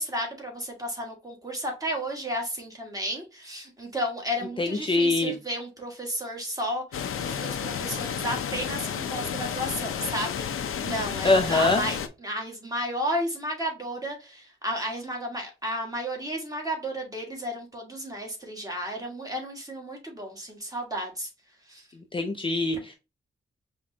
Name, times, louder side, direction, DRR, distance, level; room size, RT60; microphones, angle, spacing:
voice 1, 0.0-6.8 7.1-21.3 21.7-21.8, equal, 15° right, 1.5 m, -33 dB
voice 2, 4.6-5.3 11.2-11.8 22.1-23.0, left 2 dB, 25° left, 0.5 m, -23 dB
sound 1, 6.9-12.1, left 8 dB, 85° left, 0.6 m, -31 dB
5.0 x 3.0 x 2.6 m
wide cardioid pair, 155°, 21 cm